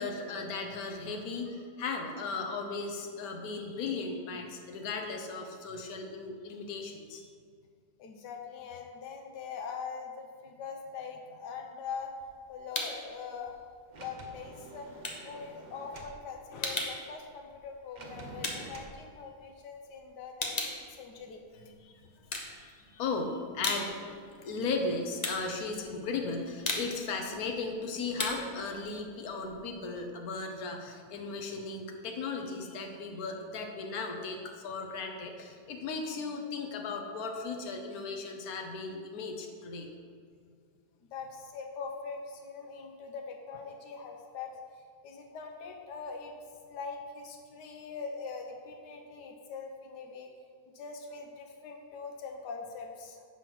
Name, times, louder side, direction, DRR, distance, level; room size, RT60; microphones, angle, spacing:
voice 1, 0.0-7.3 21.6-22.0 22.6-39.9, left 4 dB, 65° left, 3 dB, 1.4 m, -36 dB
voice 2, 8.0-12.1 12.5-14.9 15.2-21.4 39.4-39.5 41.1-44.5 45.0-46.3 46.7-50.3 50.7-53.3, left 5 dB, 85° left, 3 dB, 1.3 m, -42 dB
sound 1, 11.9-13.1 13.5-19.7 20.0-21.8 22.2-23.0 23.4-30.1, left 2 dB, 30° left, 0.9 m, -38 dB
Sliding door, 13.9-16.2 17.9-19.0, right 2 dB, 40° right, 0.7 m, -48 dB
8.2 x 5.7 x 6.1 m, 2.2 s
omnidirectional pair, 1.8 m